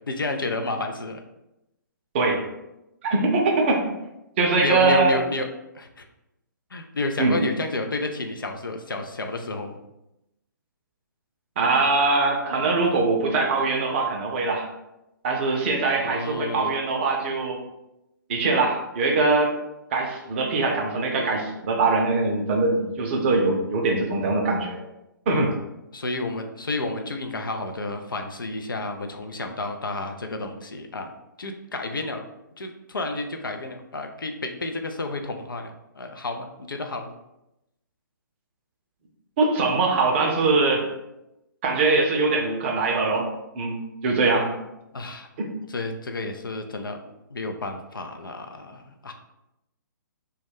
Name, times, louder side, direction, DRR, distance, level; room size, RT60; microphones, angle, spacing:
voice 1, 0.1-1.2 4.6-5.5 5.7-6.0 6.7-9.8 16.0-16.8 25.9-31.1 31.4-32.2 32.6-37.1 44.9-45.3 45.7-47.0 47.3-49.1, left 2 dB, 80° left, 4 dB, 0.4 m, -31 dB
voice 2, 3.0-3.9 4.4-5.2 7.2-7.4 11.6-14.7 15.2-17.6 18.3-19.6 19.9-24.8 25.3-25.6 39.4-40.8 41.6-44.5 45.4-45.5, right 3 dB, 35° right, 1 dB, 0.5 m, -22 dB
2.2 x 2.1 x 3.3 m, 0.90 s
figure-of-eight pair, 130°, 11 cm